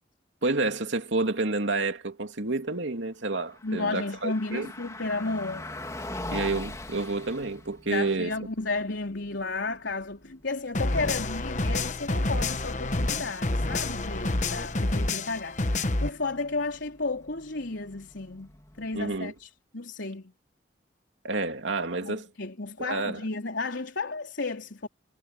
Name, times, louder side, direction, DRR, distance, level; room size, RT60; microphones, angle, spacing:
voice 1, 0.4-4.7 6.3-8.3 18.9-19.3 21.2-22.3 22.8-23.2, right 3 dB, 85° right, 2.8 m, -29 dB
Car passing by, 3.3-19.4, left 2 dB, 20° left, 2.8 m, -44 dB
voice 2, 3.6-5.7 7.9-18.5 18.8-20.3 22.0-24.9, left 3 dB, 85° left, 3.7 m, -33 dB
sound 1, 10.7-16.1, left 2 dB, 40° left, 1.1 m, -28 dB
head